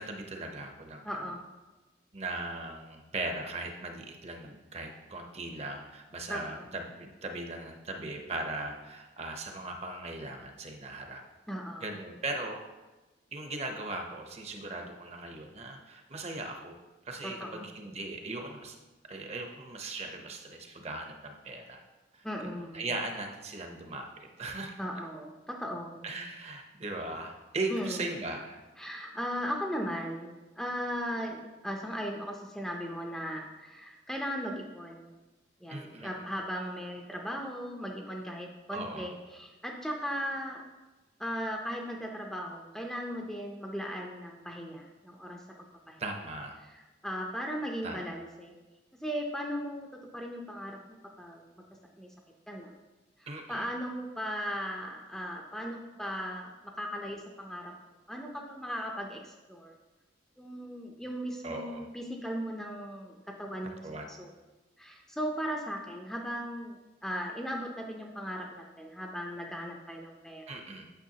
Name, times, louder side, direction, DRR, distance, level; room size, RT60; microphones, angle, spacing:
voice 1, 0.0-1.0 2.1-11.2 11.8-12.6 13.3-16.8 17.0-18.8 19.0-21.8 22.1-22.2 22.6-24.1 24.4-24.7 26.0-28.6 35.7-36.2 38.7-39.1 46.0-46.6 47.8-48.0 53.3-53.7 61.4-61.8 63.8-64.1 70.5-70.9, right 2 dB, 35° right, 4 dB, 0.7 m, -38 dB
voice 2, 1.0-1.5 6.3-6.7 11.5-11.9 17.2-17.7 22.2-22.8 24.8-26.0 27.7-28.0 28.8-35.1 35.6-40.6 41.2-45.4 45.9-46.0 47.0-48.6 49.0-50.8 51.2-51.4 52.0-52.1 52.5-52.7 53.2-56.5 56.8-57.7 58.1-59.7 60.4-64.3 64.8-70.6, equal, 5° left, 0 dB, 0.5 m, -37 dB
9.1 x 6.3 x 2.8 m, 1.1 s
head